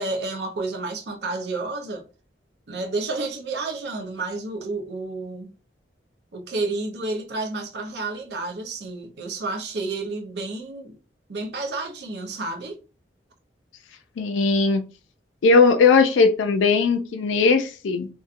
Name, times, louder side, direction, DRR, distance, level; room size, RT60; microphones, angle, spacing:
voice 1, 0.0-2.0 2.7-5.5 6.3-11.0 11.3-12.8, right 3 dB, 60° right, 0.6 m, -30 dB
voice 2, 14.2-14.8 15.4-18.1, left 4 dB, 90° left, 0.4 m, -18 dB
2.7 x 2.2 x 2.4 m
head